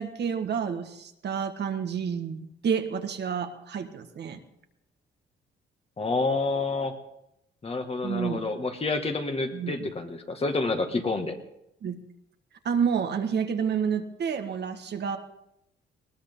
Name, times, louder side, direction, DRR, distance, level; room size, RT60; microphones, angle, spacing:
voice 1, 0.0-4.4 8.0-8.5 9.5-9.9 11.8-12.0 12.6-15.2, right 7 dB, 60° right, 7 dB, 1.6 m, -29 dB
voice 2, 6.0-6.9 7.6-11.4, left 3 dB, 30° left, 5 dB, 2.0 m, -28 dB
20.5 x 18.0 x 3.8 m, 0.82 s
cardioid pair, 90°, 20 cm